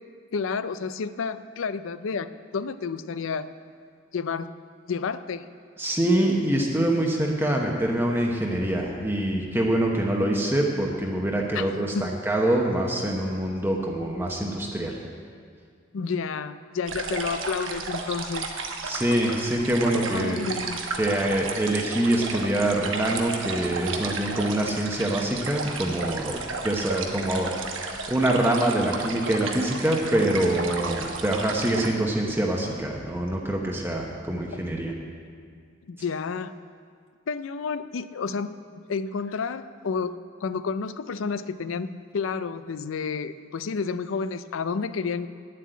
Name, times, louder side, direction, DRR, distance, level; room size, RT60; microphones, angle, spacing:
voice 1, 0.3-3.5 4.1-4.5 4.9-5.4 11.5-11.7 11.9-12.1 15.9-18.5 19.9-20.8 31.4-31.5 35.9-36.5 37.3-40.1 40.4-41.9 42.1-45.3, left 5 dB, 85° left, 13 dB, 0.4 m, -30 dB
voice 2, 5.8-15.0 18.8-20.4 21.0-27.5 27.9-34.9, right 1 dB, 10° right, -1 dB, 0.9 m, -25 dB
sound 1, 16.9-31.9, right 4 dB, 80° right, 1.2 m, -33 dB
9.4 x 7.7 x 9.3 m, 2.1 s
head